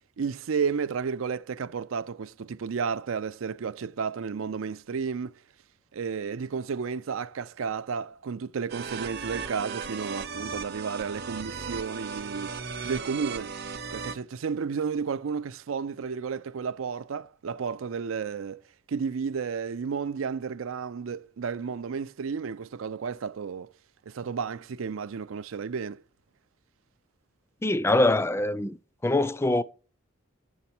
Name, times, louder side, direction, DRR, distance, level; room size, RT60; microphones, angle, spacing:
voice 1, 0.2-5.4 5.9-13.5 13.9-18.6 18.9-23.7 24.1-26.0, right 6 dB, 85° right, 0.4 m, -32 dB
sound 1, 8.7-14.1, right 5 dB, 50° right, 0.7 m, -36 dB
voice 2, 27.6-28.8 29.0-29.6, left 2 dB, 15° left, 0.4 m, -23 dB
8.1 x 6.8 x 4.3 m
head